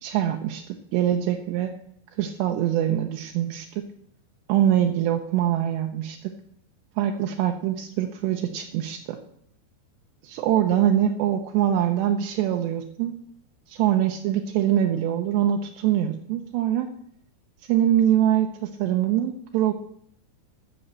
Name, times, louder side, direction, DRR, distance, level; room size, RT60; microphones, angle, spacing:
voice 1, 0.0-0.6 0.9-1.7 2.2-3.8 4.5-6.3 7.0-9.2 10.2-13.1 13.7-16.9 17.7-19.7, right 11 dB, 80° right, 3 dB, 2.9 m, -23 dB
12.0 x 6.4 x 7.8 m, 0.68 s
omnidirectional pair, 5.1 m